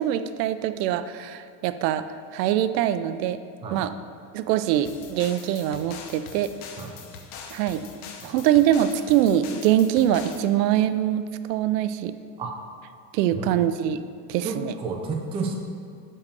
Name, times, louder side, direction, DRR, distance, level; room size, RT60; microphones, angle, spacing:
voice 1, 0.0-2.0 2.3-3.4 3.7-3.9 4.3-6.5 7.5-7.9 8.2-12.1 13.1-14.0 14.3-14.7, right 11 dB, 80° right, 12 dB, 0.6 m, -23 dB
sound 1, 4.8-10.5, left 6 dB, 60° left, 1.1 m, -43 dB
voice 2, 14.4-15.6, right 4 dB, 15° right, 1 dB, 0.4 m, -31 dB
6.5 x 5.6 x 6.9 m, 2.3 s
supercardioid pair, 150°, 49 cm